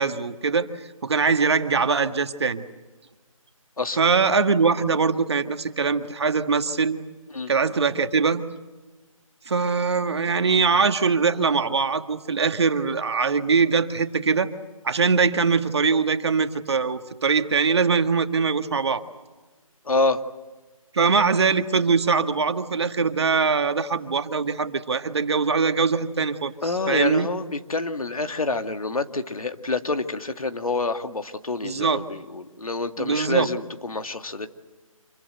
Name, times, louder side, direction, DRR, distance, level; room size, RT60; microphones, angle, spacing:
voice 1, 0.0-2.6 4.0-7.0 7.5-8.4 9.5-14.5 14.8-19.0 20.9-27.3 31.6-32.0 33.0-33.5, right 5 dB, 50° right, 9 dB, 1.7 m, -22 dB
voice 2, 19.9-20.2 26.6-34.5, left 3 dB, 80° left, 8 dB, 2.2 m, -27 dB
27.0 x 23.0 x 8.0 m, 1.2 s
figure-of-eight pair, 165°, 18 cm